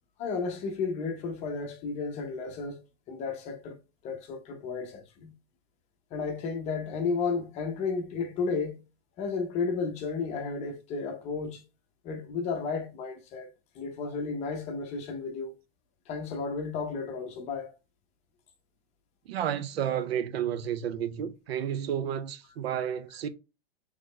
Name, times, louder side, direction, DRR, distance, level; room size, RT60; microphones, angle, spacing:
voice 1, 0.2-2.8 3.1-3.8 4.0-5.3 6.1-8.8 9.2-11.6 12.0-13.5 13.7-15.5 16.1-17.7, left 4 dB, 20° left, 0.7 m, -33 dB
voice 2, 19.3-23.3, right 9 dB, 80° right, 0.7 m, -31 dB
3.9 x 3.2 x 3.1 m
supercardioid pair, 155°, 30 cm